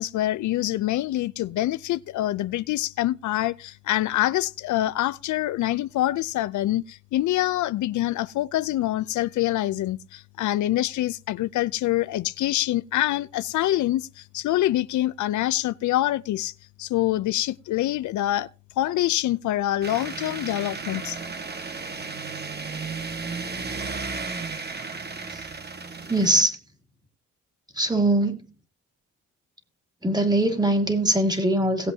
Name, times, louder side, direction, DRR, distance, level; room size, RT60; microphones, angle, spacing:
voice 1, 0.0-16.5 16.8-18.5 18.8-21.2, left 14 dB, 75° left, 0.6 m, -25 dB
sound 1, 19.8-26.4, right 4 dB, 35° right, 1.6 m, -34 dB
voice 2, 26.1-26.6 27.7-28.5 30.0-31.9, right 1 dB, 15° right, 2.9 m, -22 dB
18.5 x 8.0 x 2.8 m
cardioid pair, 90°, 30 cm